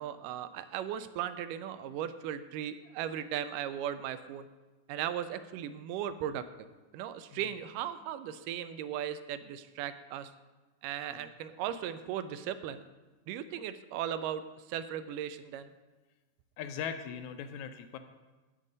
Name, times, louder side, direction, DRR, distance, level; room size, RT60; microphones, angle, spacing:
voice 1, 0.0-4.5 4.9-6.7 6.9-10.3 10.8-12.8 13.3-15.7, right 10 dB, 85° right, 12 dB, 2.1 m, -37 dB
voice 2, 16.6-18.0, left 7 dB, 85° left, 8 dB, 1.7 m, -39 dB
11.0 x 8.4 x 4.0 m, 1.2 s
omnidirectional pair, 3.8 m